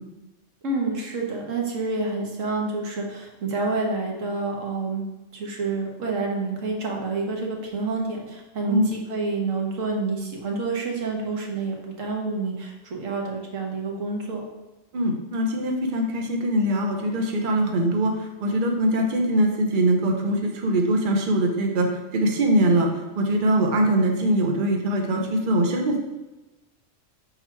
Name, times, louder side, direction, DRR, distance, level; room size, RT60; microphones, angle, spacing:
voice 1, 0.6-5.0 5.3-14.4, right 3 dB, 90° right, 0 dB, 1.5 m, -28 dB
voice 2, 14.9-21.9 22.1-26.0, right 1 dB, 45° right, 2 dB, 0.9 m, -22 dB
5.9 x 4.0 x 4.5 m, 1.1 s
omnidirectional pair, 1.3 m